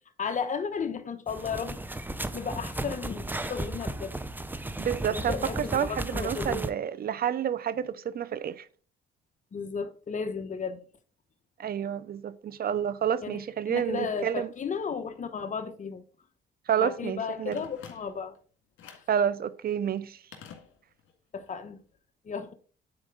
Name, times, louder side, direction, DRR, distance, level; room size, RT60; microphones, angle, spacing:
voice 1, 0.2-1.8 2.3-4.1 5.1-6.6 9.5-10.8 13.2-13.4 13.7-16.0 16.8-18.4 21.3-21.8 22.2-22.5, left 6 dB, 40° left, 1.0 m, -34 dB
sound 1, 1.3-6.7, right 1 dB, 10° right, 0.7 m, -35 dB
voice 2, 4.8-8.7 11.6-14.5 16.7-17.6 19.1-20.2, right 9 dB, 50° right, 0.6 m, -29 dB
Telephone, 17.5-18.4 18.8-19.2 20.3-21.2 21.5-21.6, left 7 dB, 80° left, 1.9 m, -48 dB
9.9 x 4.4 x 3.8 m
cardioid pair, 90°, 20 cm